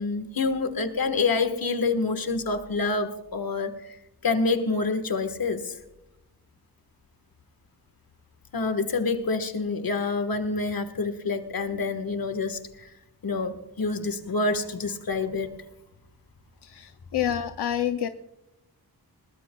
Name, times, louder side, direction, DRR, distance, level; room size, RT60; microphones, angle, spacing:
voice 1, 0.0-4.0 4.2-5.8 8.5-12.9 13.2-15.5, left 3 dB, 60° left, 1.5 m, -27 dB
voice 2, 16.6-18.1, left 10 dB, 85° left, 0.6 m, -28 dB
20.5 x 19.0 x 2.3 m
wide cardioid pair, 105°, 39 cm